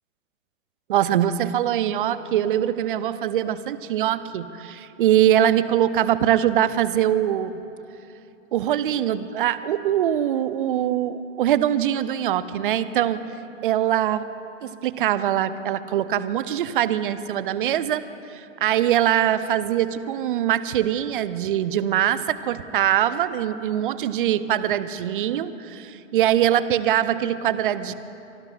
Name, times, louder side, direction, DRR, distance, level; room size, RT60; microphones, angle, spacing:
voice 1, 0.9-7.6 8.5-13.2 13.6-14.3 14.6-18.0 18.3-27.9, right 11 dB, 40° right, 14 dB, 0.7 m, -22 dB
24.5 x 23.0 x 2.5 m, 2.9 s
figure-of-eight pair, 115°, 40 cm